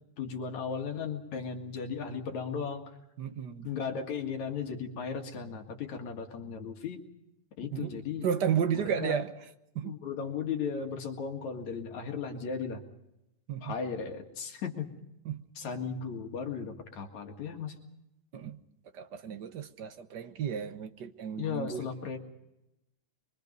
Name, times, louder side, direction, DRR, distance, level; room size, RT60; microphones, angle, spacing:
voice 1, 0.2-2.8 3.6-7.0 7.6-8.3 8.7-9.2 9.8-12.8 13.6-14.9 15.6-17.8 21.4-22.2, left 6 dB, 70° left, 3.3 m, -36 dB
voice 2, 3.2-3.7 7.7-9.3 9.7-9.9 13.5-13.7 15.2-15.4 18.3-18.6 18.9-21.9, right 8 dB, 65° right, 1.0 m, -33 dB
25.0 x 24.0 x 5.3 m
omnidirectional pair, 3.4 m